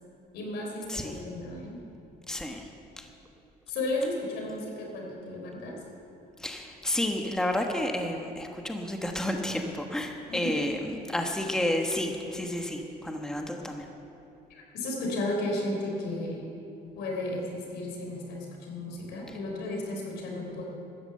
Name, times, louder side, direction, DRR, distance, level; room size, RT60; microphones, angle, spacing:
voice 1, 0.3-1.8 3.7-5.8 10.3-10.5 14.5-16.4 17.0-20.7, left 1 dB, 80° left, 0 dB, 3.6 m, -34 dB
voice 2, 2.3-2.7 3.0-3.1 6.4-13.9 19.3-19.4, left 1 dB, 5° left, 3 dB, 1.2 m, -31 dB
13.5 x 10.0 x 7.7 m, 2.8 s
cardioid pair, 110°, 17 cm